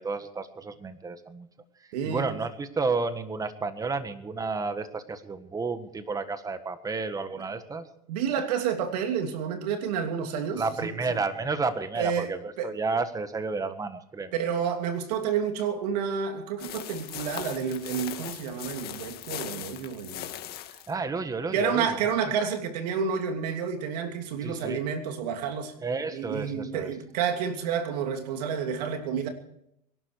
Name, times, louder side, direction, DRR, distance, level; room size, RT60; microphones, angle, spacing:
voice 1, 0.0-1.5 2.0-7.9 10.6-14.3 20.9-22.0 24.4-24.8 25.8-26.9, right 4 dB, 20° right, 1.6 m, -31 dB
voice 2, 1.9-2.4 8.1-11.2 12.0-12.3 12.6-12.7 14.3-20.3 21.5-25.7 26.1-29.3, right 7 dB, 85° right, 2.9 m, -30 dB
sound 1, 16.6-20.9, left 12 dB, 50° left, 2.0 m, -39 dB
24.0 x 11.5 x 4.8 m
supercardioid pair, 115°, 20 cm